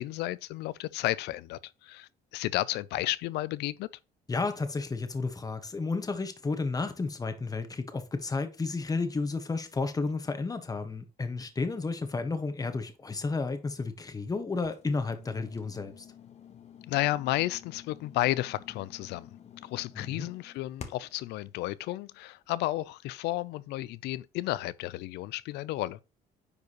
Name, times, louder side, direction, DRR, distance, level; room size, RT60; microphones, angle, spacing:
voice 1, 0.0-3.9 16.9-19.3 19.6-26.0, left 16 dB, 85° left, 0.5 m, -32 dB
voice 2, 4.3-16.0 20.0-20.3, left 3 dB, 20° left, 1.4 m, -32 dB
sound 1, 14.6-21.2, left 8 dB, 40° left, 1.1 m, -50 dB
9.9 x 4.7 x 3.1 m
cardioid pair, 110°, 17 cm